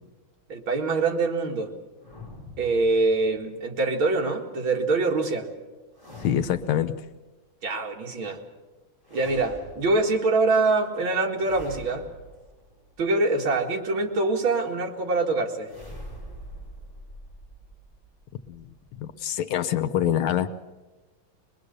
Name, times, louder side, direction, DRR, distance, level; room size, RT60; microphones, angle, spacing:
voice 1, 0.5-1.7 2.6-5.5 7.6-8.4 9.1-12.1 13.0-15.7, right 3 dB, 75° right, 2 dB, 2.8 m, -24 dB
sound 1, 2.0-3.5 5.9-7.0 9.0-10.2 11.4-13.2 15.6-19.2, equal, 10° left, 5.4 m, -44 dB
voice 2, 6.2-7.0 18.5-18.7 19.0-20.5, left 10 dB, 80° left, 11 dB, 1.8 m, -25 dB
22.0 x 22.0 x 6.7 m, 1.2 s
omnidirectional pair, 2.2 m